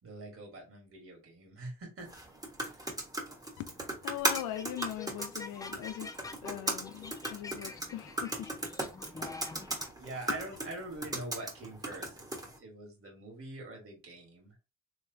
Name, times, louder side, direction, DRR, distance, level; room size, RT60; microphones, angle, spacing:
voice 1, 0.0-2.1 2.6-2.8 10.0-12.3 12.6-14.5, right 2 dB, 45° right, 1.8 m, -44 dB
sound 1, 2.0-12.6, right 1 dB, 10° right, 1.3 m, -38 dB
voice 2, 4.0-8.5 10.0-10.4, left 12 dB, 90° left, 0.5 m, -41 dB
sound 2, 4.2-9.9, left 4 dB, 10° left, 0.4 m, -46 dB
3.2 x 3.2 x 2.8 m
cardioid pair, 90°, 30 cm